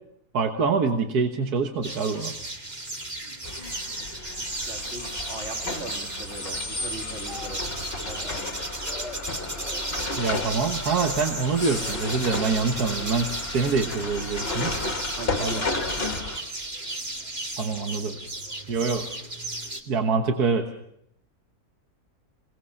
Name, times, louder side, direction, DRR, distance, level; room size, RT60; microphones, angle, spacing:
voice 1, 0.3-2.3 10.2-14.8 15.4-15.6 17.6-18.2 18.7-19.1 19.9-20.7, right 4 dB, 75° right, 5 dB, 1.9 m, -25 dB
sound 1, 1.8-19.8, right 2 dB, 25° right, 2.3 m, -34 dB
Garbage Truck Hydraulic Arm, 3.4-16.4, left 3 dB, 40° left, 2.0 m, -33 dB
voice 2, 4.4-7.6 8.0-8.7 15.2-15.6, right 2 dB, 45° right, 2 dB, 3.0 m, -40 dB
Speech, 6.8-7.8 8.0-8.5 8.8-9.2 9.6-9.8 10.2-10.6 10.9-11.2 11.6-12.0 12.4-13.2 14.0-14.2, left 2 dB, ahead, 2.3 m, -44 dB
27.0 x 19.0 x 7.1 m, 0.75 s
omnidirectional pair, 1.6 m